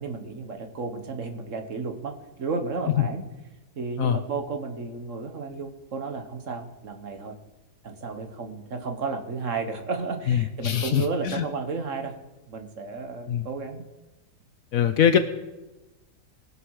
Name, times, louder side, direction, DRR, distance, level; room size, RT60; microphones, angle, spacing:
voice 1, 0.0-3.2 3.7-7.4 7.8-12.1 12.5-13.8, right 4 dB, 50° right, 6 dB, 1.5 m, -33 dB
voice 2, 10.3-11.4 13.3-13.5 14.7-15.2, left 9 dB, 65° left, 10 dB, 1.0 m, -22 dB
21.5 x 7.1 x 4.8 m, 1.1 s
omnidirectional pair, 1.8 m